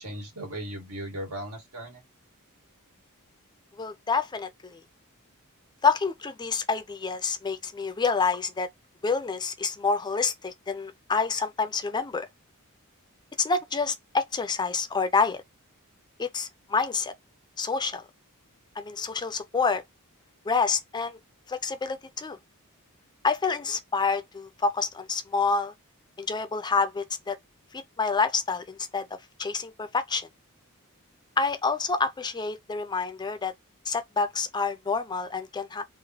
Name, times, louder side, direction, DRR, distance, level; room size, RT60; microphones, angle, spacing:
voice 1, 0.0-2.0, right 1 dB, 90° right, 1.7 m, -37 dB
voice 2, 3.8-4.8 5.8-8.7 9.0-12.3 13.4-15.4 16.2-17.1 17.6-18.0 18.8-19.8 20.5-21.2 21.5-22.4 23.2-25.7 26.2-27.4 27.7-29.1 29.4-30.3 31.4-33.5 33.9-35.9, left 4 dB, 20° left, 0.4 m, -28 dB
3.7 x 2.1 x 2.8 m
head